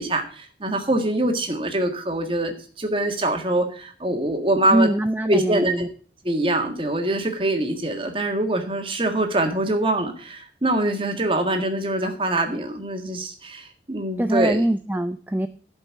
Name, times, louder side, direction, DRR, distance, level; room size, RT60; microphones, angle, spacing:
voice 1, 0.0-4.9 5.2-5.8 6.2-14.6, right 1 dB, 30° right, 4 dB, 1.7 m, -24 dB
voice 2, 4.7-5.9 14.2-15.5, right 1 dB, 10° right, 8 dB, 0.4 m, -23 dB
12.0 x 5.4 x 7.5 m, 0.42 s
head